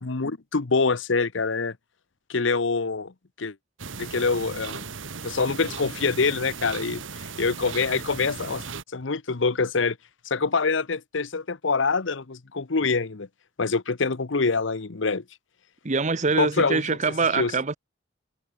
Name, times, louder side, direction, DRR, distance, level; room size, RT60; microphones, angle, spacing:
voice 1, 0.0-1.8 2.3-3.1 3.4-3.5 4.0-4.9 5.2-8.6 8.9-10.0 10.2-13.3 13.6-15.2 16.4-16.8 17.3-17.5, left 4 dB, 70° left, 0.9 m, -25 dB
sound 1, 3.8-8.8, right 5 dB, 75° right, 1.9 m, -37 dB
voice 2, 15.8-17.8, right 4 dB, 40° right, 1.0 m, -24 dB
head